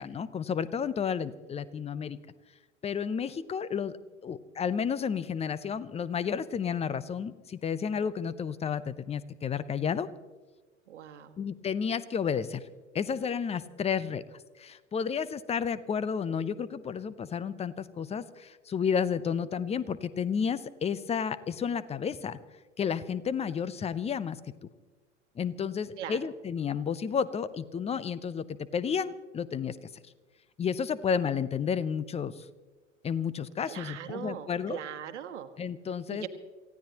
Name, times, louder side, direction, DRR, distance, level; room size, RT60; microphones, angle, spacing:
voice 1, 0.0-2.2 2.8-3.9 4.2-10.1 11.4-12.6 12.9-14.2 14.6-22.4 22.8-24.4 25.4-28.5 28.7-29.8 30.6-32.4 33.0-34.8 35.6-36.3, left 7 dB, 15° left, 17 dB, 0.7 m, -31 dB
voice 2, 10.9-11.4 26.0-26.2 33.7-35.5 36.1-36.3, right 10 dB, 70° right, 10 dB, 1.3 m, -40 dB
28.0 x 16.0 x 2.9 m, 1.3 s
figure-of-eight pair, 80°, 37 cm